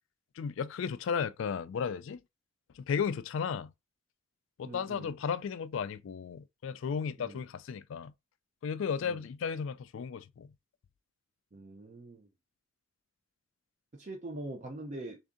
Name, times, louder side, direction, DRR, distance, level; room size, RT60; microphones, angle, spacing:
voice 1, 0.4-2.2 2.7-3.7 4.6-8.1 8.6-10.5, left 6 dB, 65° left, 0.3 m, -34 dB
voice 2, 4.6-5.1 7.2-7.4 9.0-9.2 11.5-12.3 13.9-15.2, right 2 dB, 35° right, 0.5 m, -43 dB
3.5 x 2.6 x 3.6 m
head